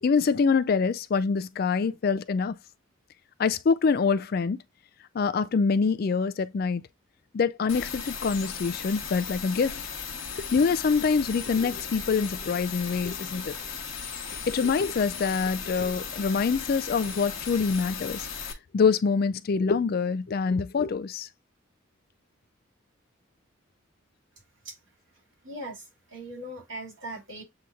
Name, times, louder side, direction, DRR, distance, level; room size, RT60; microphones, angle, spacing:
voice 1, 0.0-2.5 3.4-4.6 5.1-6.8 7.3-9.8 10.3-13.5 14.5-18.3 18.7-21.3, left 5 dB, 50° left, 0.3 m, -25 dB
sound 1, 7.7-18.5, left 6 dB, 75° left, 1.1 m, -37 dB
voice 2, 25.4-25.8 26.1-27.4, right 1 dB, 70° right, 2.8 m, -39 dB
7.7 x 2.9 x 2.4 m
head